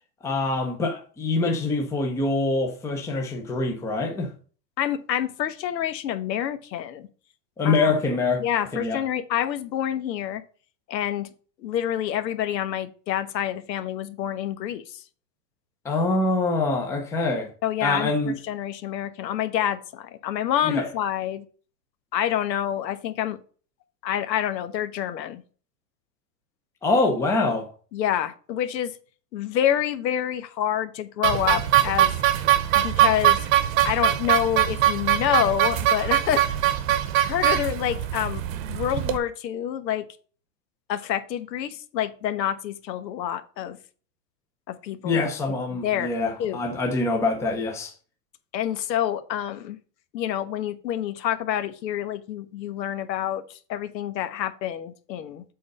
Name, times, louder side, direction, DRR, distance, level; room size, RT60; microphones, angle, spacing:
voice 1, 0.2-4.3 7.6-8.4 8.7-9.0 15.8-17.5 17.8-18.3 20.6-20.9 26.8-27.7 45.0-47.9, left 3 dB, 5° left, 0.6 m, -24 dB
voice 2, 4.8-7.1 7.6-8.0 8.4-10.4 10.9-11.3 11.6-15.0 17.6-21.4 22.1-23.4 24.0-25.4 27.9-28.9 29.3-32.1 32.7-33.4 33.8-36.7 37.1-38.4 38.7-40.0 40.9-43.8 44.7-45.2 45.7-46.1 46.4-46.6 48.5-49.8 50.1-55.4, left 10 dB, 85° left, 1.2 m, -27 dB
sound 1, 31.2-39.2, right 12 dB, 55° right, 1.0 m, -22 dB
7.7 x 3.9 x 5.3 m
supercardioid pair, 155°, 49 cm